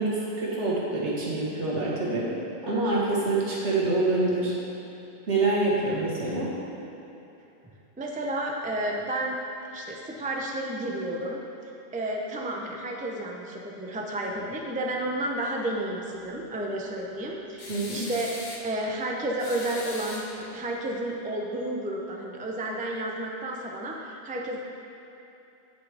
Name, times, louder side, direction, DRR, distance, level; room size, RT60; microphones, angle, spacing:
voice 1, 0.0-2.3 2.6-4.5 5.3-6.5 17.7-18.1, right 2 dB, 70° right, -6 dB, 1.9 m, -26 dB
voice 2, 8.0-9.4 9.7-11.4 11.9-18.3 18.6-24.6, right 1 dB, 10° right, -1 dB, 0.4 m, -31 dB
sound 1, 17.6-18.7 19.4-20.7, left 2 dB, 45° left, 1.0 m, -40 dB
8.3 x 8.0 x 3.4 m, 3.0 s
omnidirectional pair, 1.2 m